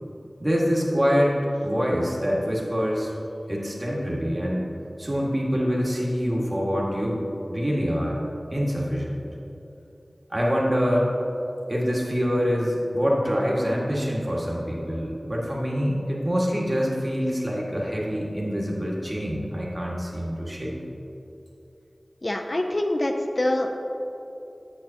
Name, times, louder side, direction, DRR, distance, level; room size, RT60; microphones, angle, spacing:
voice 1, 0.4-1.4 1.6-3.1 3.5-4.7 5.0-7.2 7.5-8.2 8.5-9.2 10.3-11.1 11.7-20.7, equal, 30° right, -4 dB, 1.8 m, -25 dB
voice 2, 22.2-23.8, left 1 dB, 45° left, 4 dB, 0.5 m, -25 dB
9.7 x 7.8 x 2.9 m, 3.0 s
wide cardioid pair, 50°, 0 cm